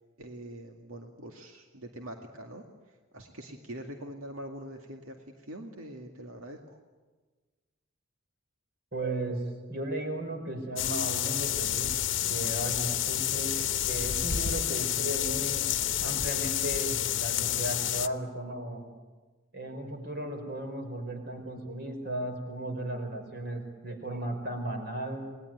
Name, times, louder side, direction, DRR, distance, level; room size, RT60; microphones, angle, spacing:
voice 1, 0.2-6.8, right 1 dB, 85° right, 3 dB, 2.2 m, -44 dB
voice 2, 8.9-11.9 12.2-13.6 13.9-18.8 19.5-25.3, right 1 dB, 50° right, 5 dB, 5.1 m, -35 dB
sound 1, 10.8-18.1, left 11 dB, 60° left, 1.0 m, -29 dB
29.0 x 20.0 x 9.4 m, 1.3 s
head